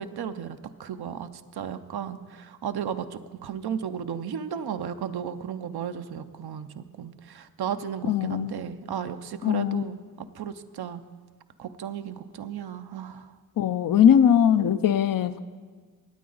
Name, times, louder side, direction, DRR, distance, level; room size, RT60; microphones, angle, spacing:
voice 1, 0.0-11.0 11.6-13.3, right 8 dB, 85° right, 9 dB, 0.6 m, -34 dB
voice 2, 8.1-8.5 9.4-9.8 13.6-15.4, left 9 dB, 65° left, 13 dB, 0.5 m, -20 dB
18.0 x 8.5 x 3.9 m, 1.5 s
cardioid pair, 60°, 37 cm